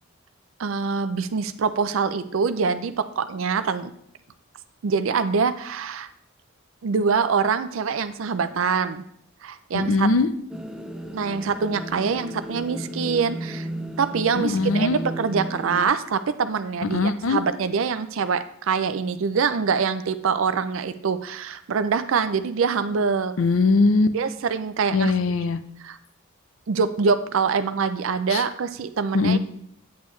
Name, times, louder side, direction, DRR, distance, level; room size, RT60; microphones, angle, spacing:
voice 1, 0.6-3.9 4.8-6.1 6.8-9.0 9.4-10.1 11.1-13.7 14.0-17.0 17.3-23.4 24.1-25.1 25.8-26.0 26.7-29.4, right 5 dB, 70° right, 11 dB, 0.4 m, -24 dB
voice 2, 9.7-10.3 14.3-15.0 16.9-17.4 23.4-24.1 24.9-25.6 28.3-28.4 29.1-29.4, left 3 dB, 70° left, 11 dB, 0.6 m, -20 dB
sound 1, 10.5-15.8, right 1 dB, 5° right, 0.6 m, -34 dB
8.3 x 8.2 x 3.2 m, 0.69 s
head